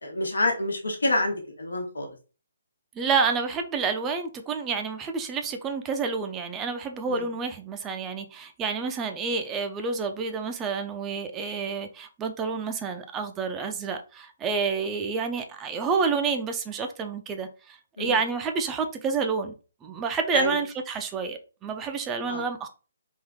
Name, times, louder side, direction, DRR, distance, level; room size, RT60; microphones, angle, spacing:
voice 1, 0.0-2.1 7.1-7.3 18.0-18.2 20.3-20.5 22.3-22.4, left 2 dB, 90° left, 3 dB, 1.1 m, -27 dB
voice 2, 3.0-19.5 19.8-22.7, right 5 dB, 15° right, 6 dB, 0.5 m, -29 dB
3.6 x 2.6 x 3.5 m, 0.34 s
hypercardioid pair, 145°, 0 cm